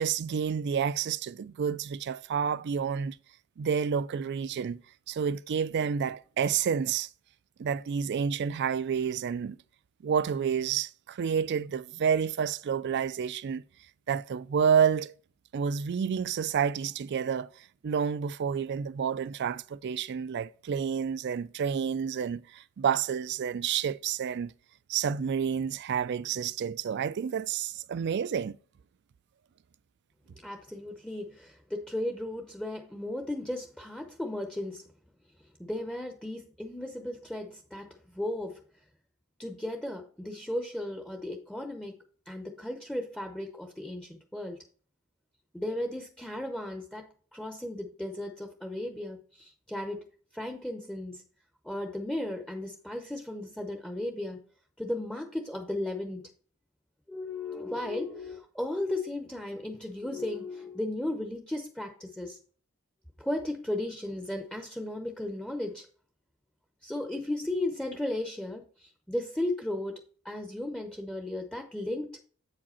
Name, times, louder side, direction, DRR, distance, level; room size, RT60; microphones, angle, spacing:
voice 1, 0.0-3.2 3.6-4.8 5.1-7.1 7.6-9.6 10.0-13.6 14.1-15.1 15.5-24.5 24.9-28.6, right 7 dB, 50° right, 0.3 m, -29 dB
voice 2, 30.4-34.8 35.6-38.6 39.4-41.9 42.3-44.6 45.5-50.0 50.3-51.2 51.6-54.4 54.8-56.2 57.1-62.4 63.2-65.9 66.8-72.2, left 1 dB, 5° left, 0.6 m, -35 dB
8.3 x 4.9 x 4.3 m
head